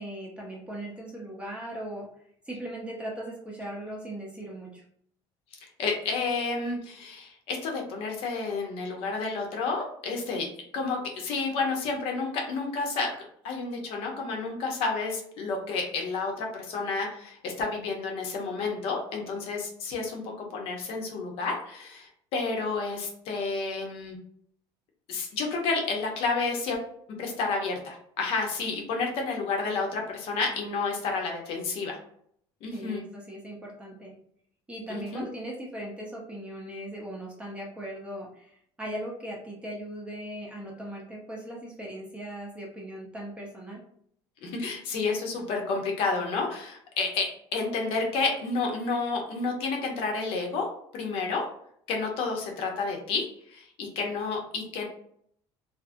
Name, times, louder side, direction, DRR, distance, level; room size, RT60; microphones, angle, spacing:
voice 1, 0.0-2.1 2.5-4.8 32.7-34.1 34.7-43.8, right 1 dB, 10° right, -3 dB, 0.6 m, -39 dB
voice 2, 5.8-10.5 10.7-13.1 13.4-24.2 25.1-26.8 27.2-32.0 32.6-33.0 34.9-35.2 44.4-50.7 50.9-51.5 51.9-54.8, left 4 dB, 60° left, 1 dB, 0.7 m, -30 dB
2.6 x 2.4 x 2.5 m, 0.66 s
cardioid pair, 165°, 11 cm